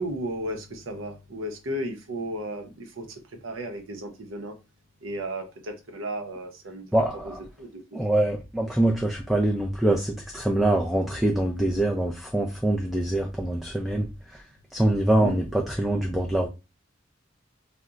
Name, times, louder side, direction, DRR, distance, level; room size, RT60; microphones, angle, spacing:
voice 1, 0.0-4.6 5.0-7.0 7.6-8.0 15.2-15.4, right 1 dB, 85° right, 0.6 m, -34 dB
voice 2, 6.9-7.4 7.9-14.4 14.7-16.5, right 1 dB, ahead, 0.3 m, -24 dB
2.4 x 2.1 x 3.8 m
head